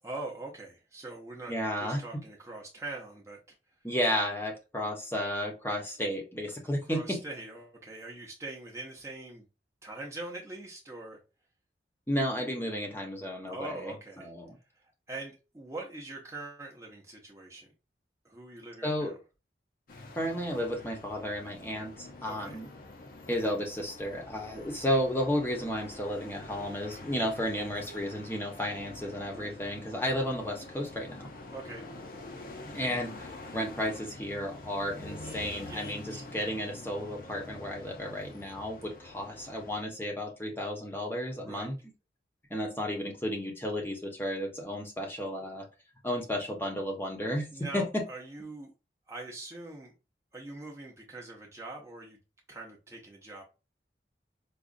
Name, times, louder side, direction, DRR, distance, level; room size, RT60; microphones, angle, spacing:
voice 1, 0.0-1.5 1.8-3.4 6.9-9.4 9.8-11.2 13.5-14.3 14.8-17.7 18.2-19.1 22.3-22.6 29.3-29.6 31.5-31.8 35.7-36.3 41.4-41.7 47.5-48.7 49.1-49.9 50.3-52.2 52.5-53.4, right 2 dB, 15° right, -1 dB, 0.6 m, -43 dB
voice 2, 1.5-2.2 3.8-7.2 12.1-14.6 18.8-19.1 20.1-22.7 23.3-31.3 32.7-41.7 42.5-45.7 46.0-47.8, equal, 15° left, 1 dB, 0.8 m, -33 dB
sound 1, 19.9-39.8, left 2 dB, 50° left, 0.6 m, -46 dB
4.9 x 2.3 x 2.5 m, 0.29 s
head